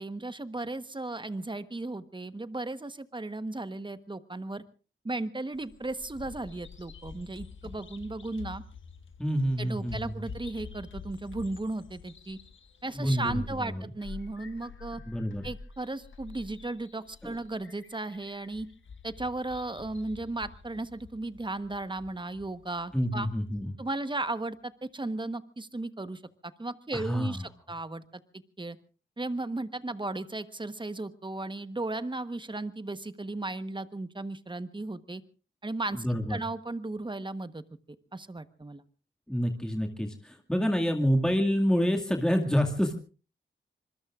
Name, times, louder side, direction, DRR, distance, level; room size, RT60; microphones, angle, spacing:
voice 1, 0.0-4.6 5.0-8.6 9.6-12.4 12.8-15.0 15.4-18.7 19.0-23.3 23.8-28.2 28.6-28.8 29.2-35.2 35.6-37.6 38.1-38.8, right 2 dB, 25° right, 12 dB, 1.1 m, -35 dB
Bird vocalization bird call bird song, 5.5-23.7, left 5 dB, 85° left, 1.5 m, -48 dB
voice 2, 9.2-10.3 12.9-13.8 15.1-15.5 17.2-17.4 22.9-23.7 26.9-27.5 35.9-36.4 39.3-43.0, equal, 5° left, 2 dB, 2.1 m, -28 dB
26.0 x 21.5 x 2.5 m, 0.36 s
cardioid pair, 60°, 20 cm